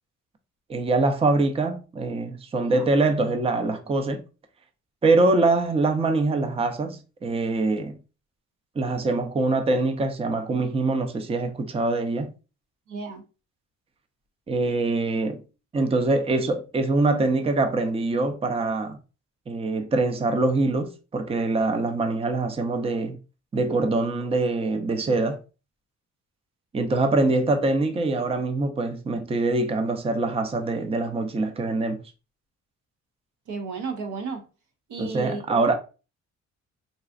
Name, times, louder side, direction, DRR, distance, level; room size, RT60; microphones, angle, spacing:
voice 1, 0.7-4.2 5.0-8.0 8.8-12.3 14.5-15.4 15.7-19.0 19.5-23.2 23.5-25.4 26.7-32.0 35.0-35.8, right 3 dB, 20° right, 0.5 m, -24 dB
voice 2, 2.6-2.9 12.9-13.2 33.5-34.4 34.9-35.4, right 4 dB, 80° right, 0.8 m, -33 dB
4.0 x 2.4 x 2.3 m
cardioid pair, 90°, 30 cm